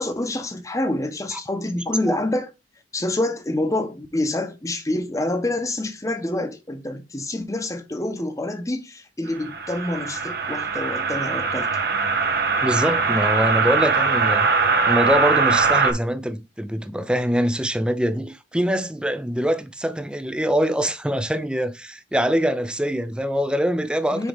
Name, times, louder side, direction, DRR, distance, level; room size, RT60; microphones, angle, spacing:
voice 1, 0.0-2.5 2.9-11.7 24.1-24.3, left 1 dB, 20° left, 0.9 m, -27 dB
sound 1, 9.3-15.9, right 4 dB, 60° right, 1.2 m, -21 dB
voice 2, 12.6-14.5 14.9-24.3, equal, 5° right, 0.6 m, -24 dB
6.3 x 4.7 x 3.4 m
head